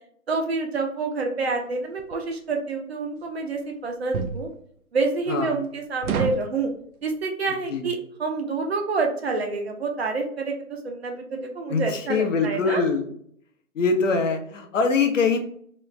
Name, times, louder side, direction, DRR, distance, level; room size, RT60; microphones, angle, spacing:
voice 1, 0.3-4.5 4.9-6.7 7.0-12.8, right 3 dB, 45° right, 2 dB, 0.7 m, -28 dB
sound 1, 2.0-2.2 4.1-4.4 6.0-6.5, right 6 dB, 85° right, 0.6 m, -26 dB
voice 2, 5.3-5.6 7.7-7.9 11.7-13.1 13.7-15.4, left 4 dB, 60° left, 5 dB, 0.7 m, -23 dB
3.1 x 2.4 x 3.1 m, 0.63 s
hypercardioid pair, 160°, 42 cm